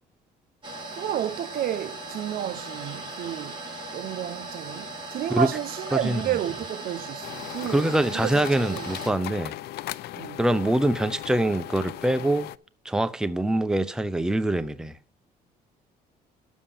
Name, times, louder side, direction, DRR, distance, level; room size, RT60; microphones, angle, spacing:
sound 1, 0.6-9.1, right 2 dB, 30° right, 3.9 m, -38 dB
voice 1, 0.9-3.6 3.9-8.9 10.1-10.4, right 11 dB, 60° right, 0.8 m, -31 dB
sound 2, 7.2-12.6, left 14 dB, 75° left, 0.5 m, -38 dB
voice 2, 7.7-9.5 10.4-12.5 12.8-15.0, right 1 dB, 5° right, 0.7 m, -24 dB
9.9 x 7.3 x 5.6 m
cardioid pair, 110°, 17 cm